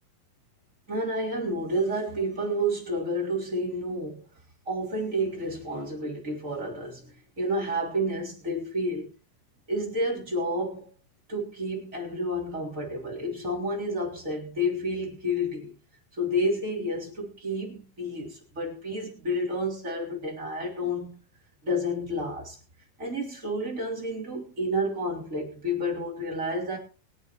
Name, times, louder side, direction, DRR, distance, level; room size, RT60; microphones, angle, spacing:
voice 1, 0.9-4.2 4.6-9.1 9.7-10.9 11.3-15.7 16.1-21.2 21.6-22.6 23.0-26.8, equal, 20° right, 3.3 m, -30 dB
24.0 x 8.5 x 3.0 m
omnidirectional pair, 4.2 m